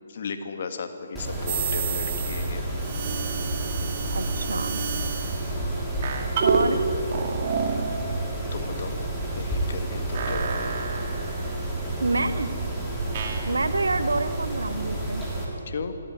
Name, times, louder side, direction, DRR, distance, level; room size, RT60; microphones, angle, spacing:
voice 1, 0.1-2.6 8.5-9.0 9.4-10.8 12.9-13.0 15.7-16.0, left 5 dB, 45° left, 8 dB, 1.8 m, -35 dB
Mechanisms, 1.1-15.4, right 1 dB, 5° right, 3.7 m, -30 dB
sound 1, 1.5-2.5 2.8-5.5 6.0-6.7 7.1-7.9 10.1-11.7 13.1-13.5, right 6 dB, 35° right, 2.3 m, -30 dB
voice 2, 4.1-4.8 6.4-6.8 12.0-12.5 13.4-15.2, right 3 dB, 70° right, 12 dB, 1.1 m, -27 dB
26.0 x 12.5 x 9.5 m, 2.8 s
figure-of-eight pair, 140°, 0 cm